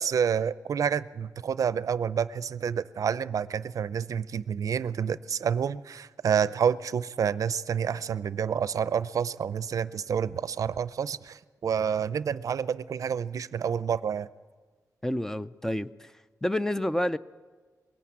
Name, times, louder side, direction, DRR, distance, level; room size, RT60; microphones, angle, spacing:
voice 1, 0.0-14.3, right 7 dB, 65° right, 16 dB, 0.5 m, -28 dB
voice 2, 15.0-16.1 16.4-17.2, left 1 dB, 5° left, 14 dB, 0.6 m, -29 dB
21.5 x 17.0 x 8.6 m, 1.4 s
cardioid pair, 95°, 6 cm